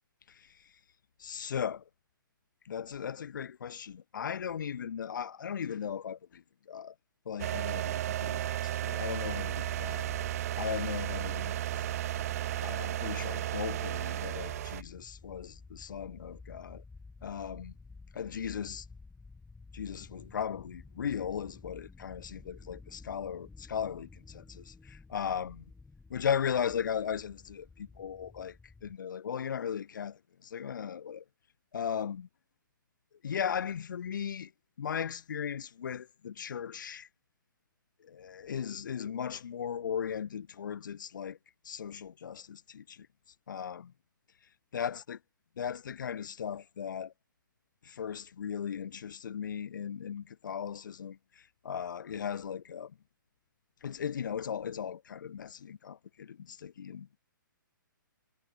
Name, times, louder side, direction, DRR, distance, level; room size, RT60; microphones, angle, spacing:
voice 1, 1.2-1.8 2.7-6.4 6.7-6.9 7.3-10.1 10.5-11.9 12.6-16.8 17.2-17.7 18.1-18.8 19.7-25.6 26.1-28.6 28.8-31.2 31.7-32.3 33.2-34.5 34.8-37.1 38.1-41.4 41.7-43.1 43.5-43.9 44.7-45.2 45.6-47.1 47.8-51.2 51.6-52.9 53.8-57.2, left 8 dB, 65° left, 1.8 m, -37 dB
sound 1, 7.4-14.8, right 13 dB, 45° right, 0.4 m, -34 dB
sound 2, 9.2-29.0, left 3 dB, 5° left, 6.5 m, -52 dB
hypercardioid pair, 130°, 11 cm